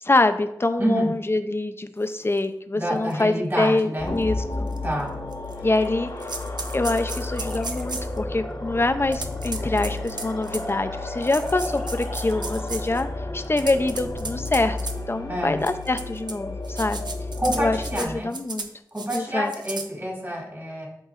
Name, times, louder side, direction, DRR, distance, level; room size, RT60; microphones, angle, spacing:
voice 1, 0.0-4.7 5.6-6.1 6.7-13.1 13.3-14.8 15.1-17.0 17.6-18.7 19.1-19.5, left 2 dB, 35° left, 8 dB, 0.5 m, -25 dB
voice 2, 0.8-1.1 2.7-4.1 4.8-5.1 15.3-15.6 17.4-18.3 18.9-20.9, equal, 30° right, -3 dB, 1.9 m, -27 dB
sound 1, 2.4-2.5 3.1-3.2 3.7-3.8 4.7-4.8 5.3-5.9 6.2-8.2 9.1-10.7 11.2-13.0 13.4-14.9 15.6-16.3 16.6-18.1 18.3-18.7 19.0-19.2 19.5-19.9, right 3 dB, 75° right, 0.6 m, -35 dB
sound 2, 4.0-18.0, left 2 dB, 80° left, 0.9 m, -32 dB
sound 3, 6.6-13.1, equal, 5° left, 0.9 m, -40 dB
11.0 x 3.9 x 2.4 m, 0.80 s
wide cardioid pair, 75°, 7 cm